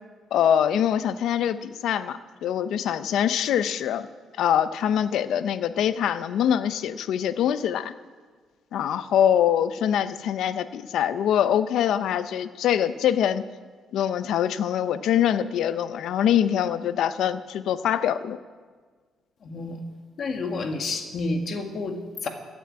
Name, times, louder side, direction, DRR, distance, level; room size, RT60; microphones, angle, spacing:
voice 1, 0.3-4.1 4.4-7.9 8.7-13.4 13.9-18.4, left 9 dB, 80° left, 13 dB, 0.6 m, -24 dB
voice 2, 19.4-19.8 20.2-22.3, left 3 dB, 55° left, 5 dB, 1.7 m, -30 dB
14.5 x 7.2 x 8.6 m, 1.5 s
cardioid pair, 90°, 0 cm